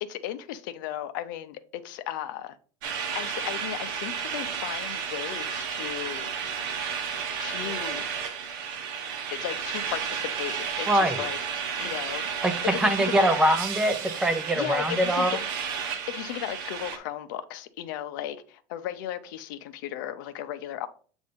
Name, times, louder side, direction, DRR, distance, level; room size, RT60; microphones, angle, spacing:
voice 1, 0.0-2.6 3.1-6.3 7.4-8.0 9.3-11.4 11.8-13.3 14.5-15.4 16.1-20.9, left 12 dB, 85° left, 0.6 m, -35 dB
sound 1, 2.8-17.0, right 7 dB, 75° right, 1.0 m, -32 dB
voice 2, 10.9-11.2 12.4-15.4, right 1 dB, 5° right, 0.5 m, -23 dB
7.9 x 2.7 x 5.1 m
cardioid pair, 165°, 10 cm